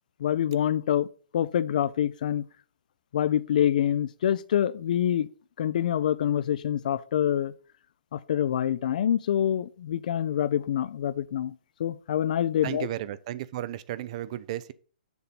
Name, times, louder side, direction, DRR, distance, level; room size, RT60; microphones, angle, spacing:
voice 1, 0.2-1.1 1.3-2.5 3.1-5.3 5.6-7.5 8.1-11.5 11.8-12.9, left 10 dB, 55° left, 0.4 m, -26 dB
voice 2, 12.6-14.7, right 13 dB, 45° right, 0.5 m, -34 dB
7.0 x 3.9 x 5.8 m
hypercardioid pair, 130°, 5 cm